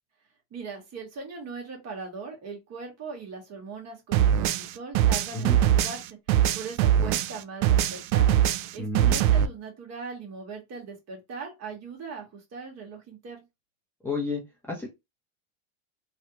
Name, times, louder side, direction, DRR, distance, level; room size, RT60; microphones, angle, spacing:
voice 1, 0.5-6.0 6.5-8.3 8.7-13.4, right 4 dB, 40° right, 1.6 m, -39 dB
sound 1, 4.1-7.4 7.6-9.5, right 10 dB, 80° right, 0.5 m, -22 dB
voice 2, 8.8-9.2 14.0-14.4 14.7-14.9, left 3 dB, 5° left, 0.9 m, -30 dB
3.3 x 2.4 x 2.9 m
supercardioid pair, 115°, 41 cm